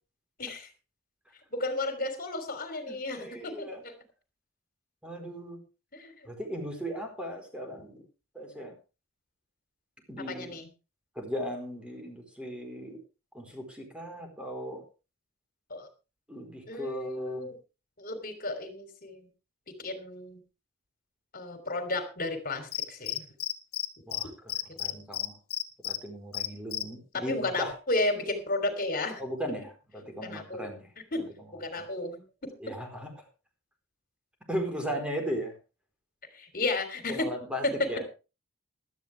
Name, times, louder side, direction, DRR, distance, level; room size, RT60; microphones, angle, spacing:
voice 1, 0.4-0.7 1.5-3.9 5.9-6.3 10.3-10.7 15.7-15.9 16.7-17.6 18.0-19.3 19.7-20.4 21.3-23.2 24.9-25.0 27.1-29.2 30.2-30.7 31.1-31.3 31.6-32.5 36.3-37.3 37.6-37.9, left 2 dB, 45° left, 8 dB, 3.4 m, -33 dB
voice 2, 2.9-3.8 5.0-5.6 6.2-8.0 8.3-8.7 10.1-10.6 11.2-13.0 13.3-14.8 16.3-17.5 24.1-24.3 24.8-25.4 25.8-27.7 29.2-30.9 31.7-31.8 32.6-33.1 34.5-35.5 37.1-38.0, equal, 5° right, 3 dB, 4.3 m, -37 dB
Cricket, 22.7-23.9 24.1-24.2 24.5-26.0 26.3-26.8, left 13 dB, 85° left, 1.6 m, -31 dB
16.0 x 13.0 x 3.4 m, 0.31 s
head